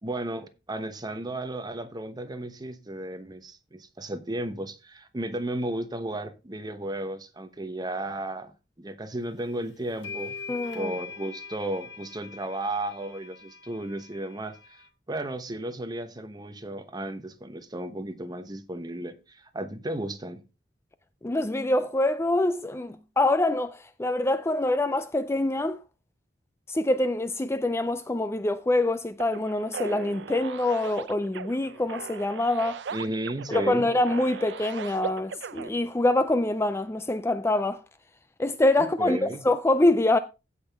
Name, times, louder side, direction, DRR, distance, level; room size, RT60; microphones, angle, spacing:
voice 1, 0.0-10.4 10.7-14.8 15.1-20.4 32.9-33.9 38.8-39.4, right 1 dB, 25° right, 1.0 m, -34 dB
sound 1, 9.4-9.5 10.0-14.9, left 5 dB, 75° left, 2.7 m, -42 dB
voice 2, 10.5-10.9 21.2-25.8 26.7-32.8 33.5-37.8 38.4-40.2, left 2 dB, 15° left, 0.4 m, -25 dB
sound 2, 29.2-35.7, right 6 dB, 75° right, 0.5 m, -38 dB
15.5 x 5.8 x 3.5 m
head